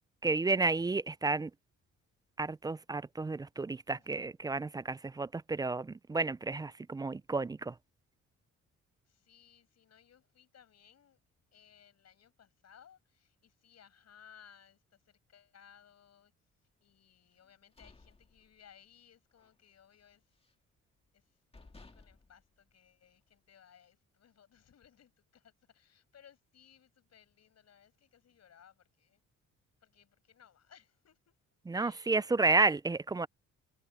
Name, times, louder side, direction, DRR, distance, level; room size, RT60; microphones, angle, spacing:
voice 1, 0.2-1.5 2.4-7.7 31.7-33.3, right 3 dB, 15° right, 0.3 m, -31 dB
voice 2, 9.0-11.2 11.5-16.3 16.8-20.3 21.1-29.2 29.8-31.4 31.7-32.1, left 8 dB, 60° left, 7.1 m, -62 dB
sound 1, 17.4-19.0 19.3-19.6 19.9-20.7 21.2-21.3 21.5-23.4, left 3 dB, 20° left, 2.1 m, -59 dB
cardioid pair, 90°, 30 cm